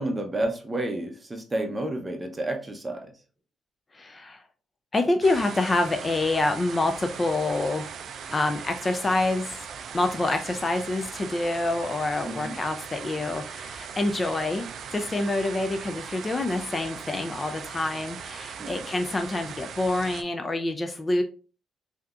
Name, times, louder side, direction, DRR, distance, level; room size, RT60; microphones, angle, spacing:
voice 1, 0.0-3.1 12.2-12.6 18.6-18.8, right 1 dB, 20° right, 4 dB, 0.7 m, -30 dB
voice 2, 3.9-4.4 4.9-7.8 8.3-9.6 9.9-14.7 14.9-21.2, left 2 dB, 25° left, 7 dB, 0.4 m, -27 dB
sound 1, 5.2-20.2, right 7 dB, 65° right, 0.3 m, -39 dB
3.5 x 2.7 x 2.4 m, 0.36 s
cardioid pair, 90°, 0 cm